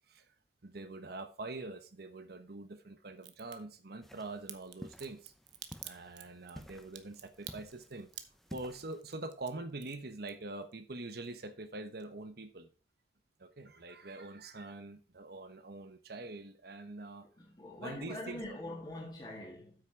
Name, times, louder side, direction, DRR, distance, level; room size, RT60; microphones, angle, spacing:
voice 1, 0.6-5.3 5.8-8.1 8.5-12.7 13.4-17.3 17.8-18.4, right 2 dB, 60° right, 1.1 m, -44 dB
Crack, 3.2-3.6 4.5-10.7 11.0-11.7 12.0-12.1, right 12 dB, 85° right, 0.9 m, -49 dB
sound 1, 4.0-9.0, equal, ahead, 0.6 m, -53 dB
voice 2, 17.4-19.7, left 1 dB, 25° left, 1.8 m, -43 dB
8.7 x 6.1 x 4.6 m
head